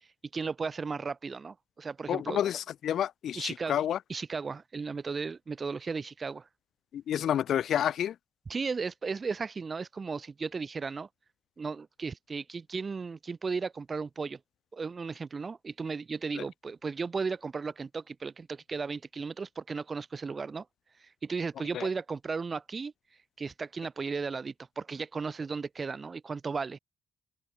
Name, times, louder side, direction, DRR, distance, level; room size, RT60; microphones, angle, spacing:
voice 1, 0.3-2.4 3.3-3.8 4.1-6.5 8.5-11.1 11.6-14.4 14.7-20.6 21.0-22.9 23.4-26.8, right 4 dB, 35° right, 1.7 m, -35 dB
voice 2, 2.1-4.0 6.9-8.1 16.4-16.5 21.7-21.9, left 10 dB, 70° left, 2.6 m, -29 dB
open air
cardioid pair, 90°, 0 cm